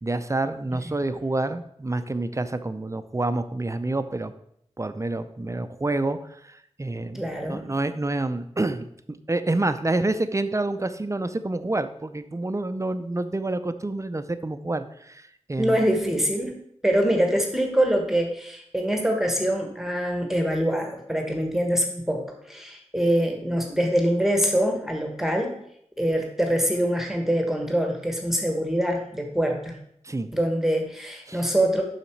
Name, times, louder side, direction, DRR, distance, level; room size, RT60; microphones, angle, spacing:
voice 1, 0.0-4.3 4.8-6.2 6.4-8.9 9.3-15.8 30.0-30.3 31.3-31.4, right 2 dB, 25° right, 11 dB, 0.5 m, -28 dB
voice 2, 7.1-7.7 15.6-16.5 16.8-25.5 26.0-29.8 30.3-31.8, equal, 5° right, 2 dB, 1.3 m, -24 dB
6.9 x 5.8 x 4.5 m, 0.71 s
wide cardioid pair, 60°, 12 cm